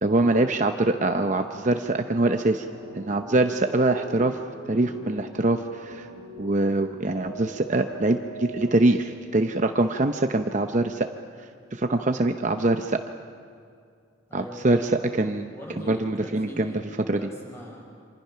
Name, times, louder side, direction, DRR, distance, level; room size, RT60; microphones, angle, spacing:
voice 1, 0.0-2.6 3.0-4.4 4.7-6.1 6.4-11.1 11.7-13.0 14.3-15.5 15.9-16.7 17.1-17.2, right 2 dB, 40° right, 6 dB, 0.7 m, -23 dB
sound 1, 2.7-8.7, right 1 dB, 75° left, 4.5 m, -41 dB
voice 2, 14.3-14.8 15.5-17.8, equal, 15° left, -2 dB, 6.1 m, -42 dB
27.5 x 26.0 x 5.8 m, 2.3 s
head